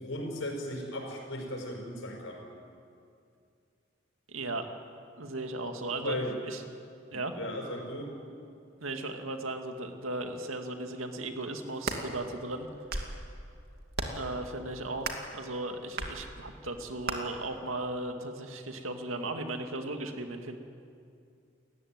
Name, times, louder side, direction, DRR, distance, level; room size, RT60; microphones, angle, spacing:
voice 1, 0.0-2.4 6.0-6.3 7.1-8.1, left 1 dB, 65° left, 1 dB, 6.2 m, -36 dB
voice 2, 4.3-4.7 5.2-6.2 6.4-6.6 7.1-7.4 8.8-12.7 14.1-20.6, right 2 dB, 85° right, 5 dB, 2.3 m, -36 dB
sound 1, 11.6-12.0 12.7-13.2 13.9-14.3 15.0-15.3 16.0-16.2 17.1-17.2, right 3 dB, 50° right, 2.5 m, -34 dB
29.5 x 15.0 x 9.6 m, 2.4 s
head